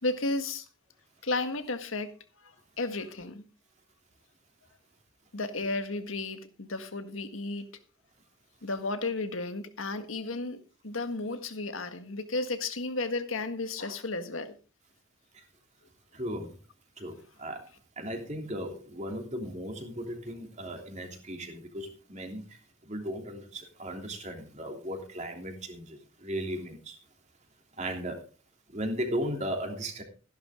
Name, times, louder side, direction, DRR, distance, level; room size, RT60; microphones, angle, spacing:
voice 1, 0.0-0.6 1.2-2.2 2.4-2.5 2.8-3.4 5.3-7.7 8.6-10.6 10.8-14.5, left 2 dB, 85° left, 1.7 m, -33 dB
voice 2, 16.1-16.6 17.0-17.7 18.0-27.0 27.7-28.2 28.7-30.0, equal, 35° right, 3.1 m, -36 dB
15.0 x 11.5 x 3.7 m
head